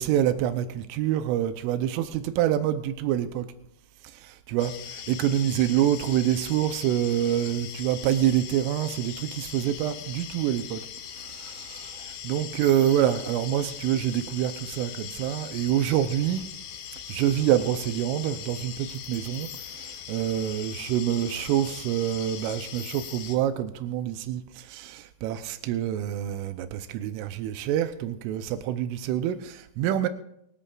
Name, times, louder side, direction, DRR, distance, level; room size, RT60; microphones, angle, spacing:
voice 1, 0.0-3.5 4.0-10.8 11.2-16.4 17.1-30.1, right 11 dB, 90° right, 3.3 m, -26 dB
sound 1, 4.6-23.4, left 9 dB, 75° left, 2.1 m, -40 dB
24.0 x 14.0 x 2.5 m
omnidirectional pair, 5.6 m